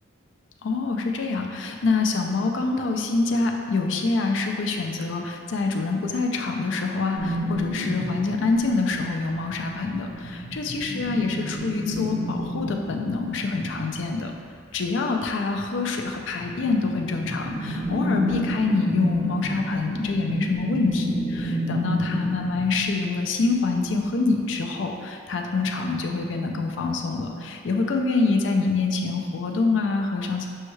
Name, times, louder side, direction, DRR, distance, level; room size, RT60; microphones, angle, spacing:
voice 1, 0.6-14.3 14.7-30.5, left 3 dB, 65° left, 3 dB, 0.4 m, -26 dB
sound 1, 7.1-8.9 9.4-14.3 16.3-22.9, equal, 10° right, 1.1 m, -30 dB
6.2 x 2.3 x 3.1 m, 2.2 s
head